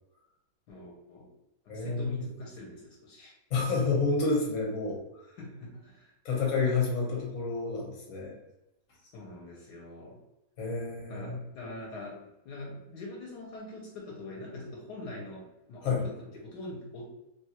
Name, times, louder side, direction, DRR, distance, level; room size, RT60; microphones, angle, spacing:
voice 1, 0.7-1.3 1.6-3.3 5.4-6.1 9.0-10.2 11.1-17.1, left 2 dB, 75° left, -2 dB, 1.2 m, -43 dB
voice 2, 1.7-2.2 3.5-5.2 6.2-8.4 10.6-11.4 15.8-16.0, left 4 dB, 50° left, -2 dB, 1.1 m, -29 dB
3.1 x 2.2 x 2.8 m, 0.95 s
omnidirectional pair, 1.9 m